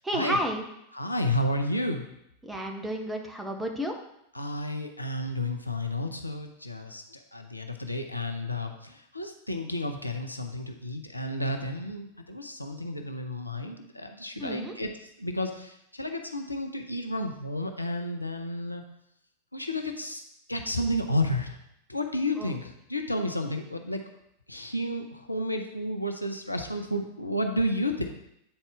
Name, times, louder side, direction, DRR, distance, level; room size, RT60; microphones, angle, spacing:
voice 1, 0.0-0.6 2.4-4.0 14.4-14.8 22.4-22.5, equal, 5° right, 3 dB, 0.9 m, -31 dB
voice 2, 0.9-2.0 4.3-14.9 15.2-18.8 19.5-20.2 20.5-21.6 21.9-24.0 24.5-28.1, left 1 dB, 85° left, 5 dB, 0.6 m, -31 dB
8.8 x 4.1 x 3.5 m, 0.79 s
figure-of-eight pair, 90°, 0 cm